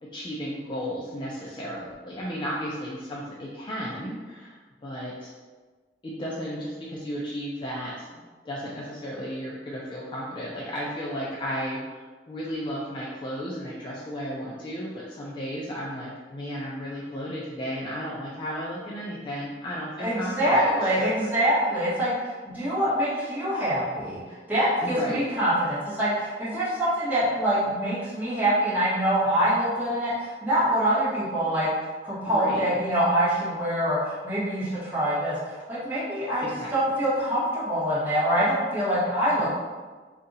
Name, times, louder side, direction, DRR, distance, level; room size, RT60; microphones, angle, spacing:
voice 1, 0.0-4.6 4.8-5.3 6.0-8.1 8.4-21.0 24.8-25.3 32.3-32.6 36.4-36.7 39.4-39.5, equal, 25° left, -5 dB, 0.4 m, -34 dB
voice 2, 20.0-31.7 32.0-36.4 36.7-39.5, right 1 dB, 10° right, -11 dB, 1.4 m, -25 dB
2.7 x 2.5 x 4.0 m, 1.4 s
head